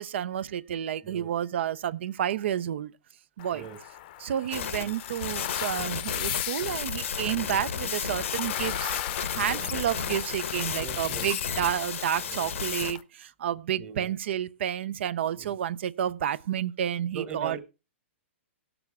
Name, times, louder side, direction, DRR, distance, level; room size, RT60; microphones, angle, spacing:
voice 1, 0.0-2.9 3.4-3.6 4.2-8.9 9.4-13.0 13.4-17.6, right 10 dB, 60° right, 0.5 m, -30 dB
sound 1, 3.4-13.0, left 14 dB, 40° left, 0.7 m, -38 dB
sound 2, 4.5-12.9, left 7 dB, 80° left, 1.0 m, -33 dB
voice 2, 10.8-11.5 12.2-12.7 13.8-14.1 15.4-15.5 17.1-17.6, right 7 dB, 20° right, 1.1 m, -42 dB
17.0 x 6.9 x 3.5 m
hypercardioid pair, 150°, 7 cm